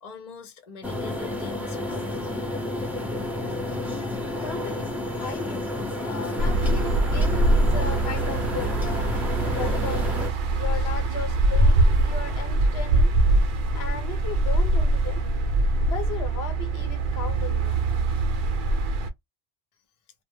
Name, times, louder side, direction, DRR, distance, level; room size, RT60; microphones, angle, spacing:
voice 1, 0.0-2.2, left 4 dB, 50° left, 0.7 m, -42 dB
sound 1, 0.8-10.3, left 1 dB, ahead, 0.5 m, -30 dB
voice 2, 4.4-5.7 6.0-9.1 9.6-10.2 10.5-13.1 13.7-15.5 15.8-17.8 18.1-18.3, left 6 dB, 85° left, 1.0 m, -36 dB
sound 2, 6.4-19.1, right 2 dB, 60° right, 0.7 m, -23 dB
2.1 x 2.1 x 3.3 m
omnidirectional pair, 1.0 m